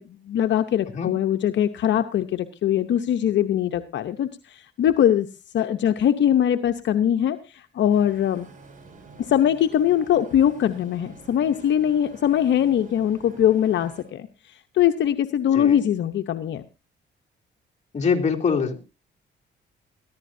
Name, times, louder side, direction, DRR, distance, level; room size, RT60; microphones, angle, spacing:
voice 1, 0.0-5.3 5.5-8.5 9.2-16.6, left 10 dB, 65° left, 8 dB, 0.9 m, -22 dB
sound 1, 7.9-14.0, right 4 dB, 40° right, 5.9 m, -48 dB
voice 2, 17.9-18.8, left 5 dB, 35° left, 1 dB, 3.1 m, -23 dB
20.5 x 14.5 x 2.7 m, 0.30 s
cardioid pair, 90°, 20 cm